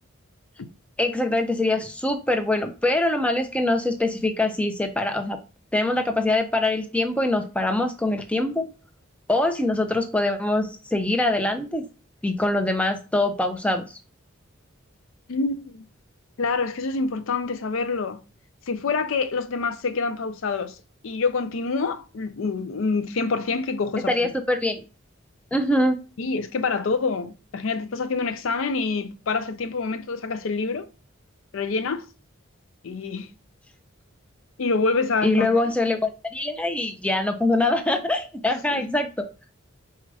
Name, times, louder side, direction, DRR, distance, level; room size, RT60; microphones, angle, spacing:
voice 1, 1.0-5.4 5.7-8.7 9.3-11.8 12.2-14.0 24.1-24.8 25.5-26.0 35.2-36.0 36.3-39.3, left 2 dB, 5° left, 0.5 m, -23 dB
voice 2, 15.3-15.8 16.4-18.2 18.7-20.8 21.0-24.3 26.2-30.9 31.5-32.1 32.8-33.3 34.6-35.7 38.7-38.9, left 4 dB, 70° left, 0.5 m, -26 dB
4.2 x 2.4 x 4.7 m
head